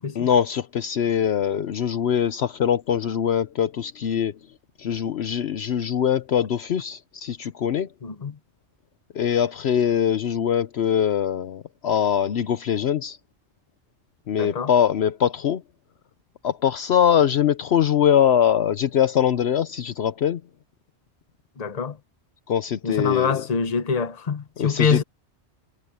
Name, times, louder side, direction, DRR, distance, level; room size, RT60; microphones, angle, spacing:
voice 1, 0.1-4.3 4.8-7.9 9.1-13.2 14.3-15.6 16.4-20.4 22.5-23.4 24.6-25.0, left 9 dB, 65° left, 0.9 m, -22 dB
voice 2, 8.0-8.4 14.4-14.7 21.6-22.0 22.8-25.0, left 5 dB, 35° left, 1.0 m, -25 dB
omnidirectional pair, 1.2 m